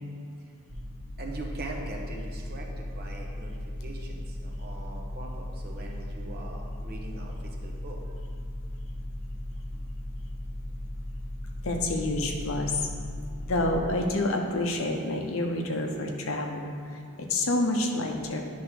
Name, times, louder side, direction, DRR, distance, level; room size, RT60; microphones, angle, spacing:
sound 1, 0.7-13.7, left 1 dB, 70° right, 1.3 m, -37 dB
voice 1, 1.2-8.0, right 2 dB, 45° right, 0 dB, 1.0 m, -42 dB
voice 2, 11.6-12.9 13.4-16.7 17.2-18.4, left 2 dB, 65° left, 3 dB, 0.8 m, -28 dB
9.7 x 3.4 x 6.0 m, 2.3 s
head